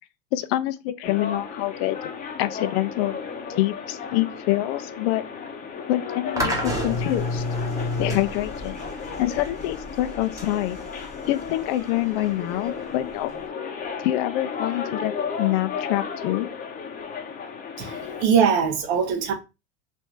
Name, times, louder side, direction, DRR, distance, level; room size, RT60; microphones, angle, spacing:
voice 1, 0.3-2.1 2.4-3.2 3.6-5.2 5.9-7.4 8.0-8.8 9.2-10.8 11.3-13.3 14.0-16.5, left 16 dB, 60° left, 0.5 m, -26 dB
sound 1, 1.0-18.2, left 6 dB, 25° left, 0.7 m, -34 dB
sound 2, 6.4-13.4, left 1 dB, 10° right, 1.0 m, -31 dB
voice 2, 17.8-19.3, right 7 dB, 65° right, 1.2 m, -22 dB
3.3 x 2.6 x 4.5 m
supercardioid pair, 125°, 35 cm